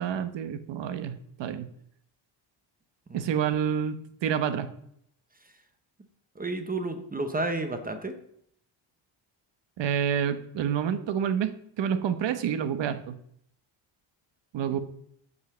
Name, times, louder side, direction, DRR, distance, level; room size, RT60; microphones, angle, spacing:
voice 1, 0.0-1.7 3.1-4.7 9.8-13.1 14.5-14.8, right 8 dB, 60° right, 11 dB, 1.1 m, -28 dB
voice 2, 6.4-8.1, right 2 dB, 20° right, 8 dB, 0.8 m, -32 dB
9.5 x 5.6 x 6.8 m, 0.70 s
cardioid pair, 160°, 48 cm